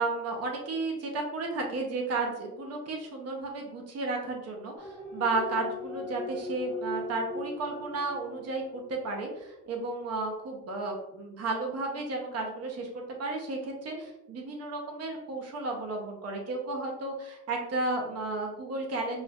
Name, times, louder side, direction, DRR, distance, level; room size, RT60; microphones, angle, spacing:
voice 1, 0.0-19.2, right 3 dB, 45° right, 1 dB, 0.7 m, -33 dB
sound 1, 4.8-9.2 9.6-9.7, left 2 dB, 5° left, 0.6 m, -39 dB
4.4 x 2.3 x 2.3 m, 0.92 s
cardioid pair, 170°, 36 cm